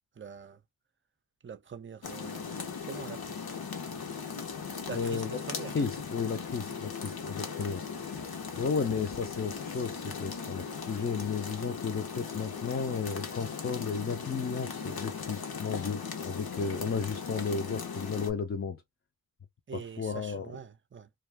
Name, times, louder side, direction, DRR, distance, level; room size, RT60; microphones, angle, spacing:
voice 1, 0.2-0.6 1.4-3.4 4.9-5.7 19.7-21.1, right 6 dB, 35° right, 0.5 m, -44 dB
sound 1, 2.0-18.3, left 5 dB, 75° left, 0.8 m, -38 dB
voice 2, 4.9-5.3 5.7-7.8 8.5-18.8 19.7-20.5, left 5 dB, 35° left, 0.5 m, -33 dB
2.3 x 2.3 x 3.3 m
wide cardioid pair, 50°, 37 cm